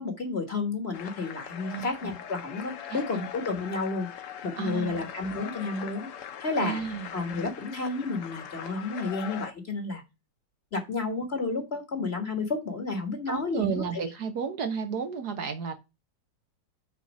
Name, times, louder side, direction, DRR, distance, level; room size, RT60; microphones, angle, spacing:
voice 1, 0.0-4.1 4.4-6.1 6.4-6.8 7.1-10.0 10.7-14.0, left 3 dB, 35° left, 1.6 m, -31 dB
sound 1, 0.9-9.5, left 8 dB, 60° left, 0.9 m, -41 dB
voice 2, 1.7-2.2 2.9-3.3 4.6-5.0 6.6-7.1 13.3-15.7, right 6 dB, 65° right, 1.4 m, -33 dB
6.2 x 4.2 x 6.0 m
omnidirectional pair, 1.9 m